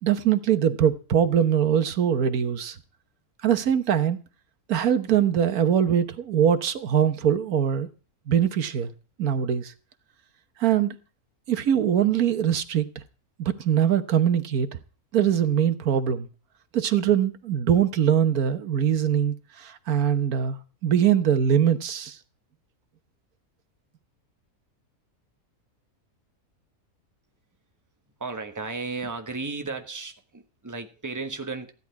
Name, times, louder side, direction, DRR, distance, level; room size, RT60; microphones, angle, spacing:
voice 1, 0.0-2.8 3.4-4.2 4.7-7.9 8.3-8.9 9.2-9.7 10.6-11.0 11.5-13.0 13.4-14.7 15.1-16.3 16.7-22.2, right 9 dB, 85° right, 1.5 m, -22 dB
voice 2, 28.2-31.7, right 3 dB, 15° right, 1.3 m, -34 dB
15.0 x 11.0 x 4.7 m
omnidirectional pair, 1.5 m